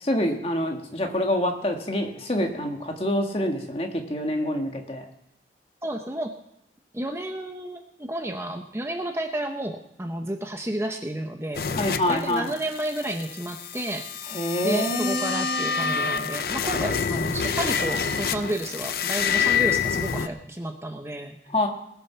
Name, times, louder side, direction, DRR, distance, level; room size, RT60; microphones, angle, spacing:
voice 1, 0.0-5.1 11.8-12.5 14.3-16.0 21.5-21.7, left 1 dB, 35° left, 3 dB, 1.7 m, -26 dB
voice 2, 5.8-6.3 6.9-14.1 14.6-21.4, right 1 dB, 15° right, 5 dB, 0.7 m, -31 dB
sound 1, 11.5-20.3, left 6 dB, 55° left, 0.6 m, -27 dB
20.0 x 7.0 x 5.7 m, 0.77 s
head